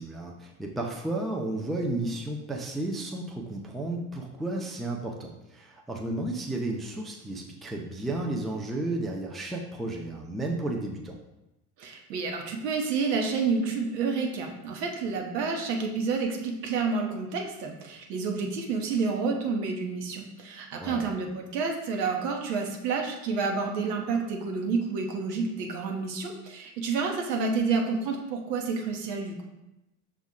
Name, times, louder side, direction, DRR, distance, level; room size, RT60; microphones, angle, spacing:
voice 1, 0.0-11.1 20.8-21.1, right 2 dB, ahead, 0 dB, 0.4 m, -33 dB
voice 2, 11.8-29.4, right 4 dB, 75° right, 2 dB, 0.9 m, -29 dB
6.1 x 2.4 x 3.6 m, 0.93 s
hypercardioid pair, 70°, 49 cm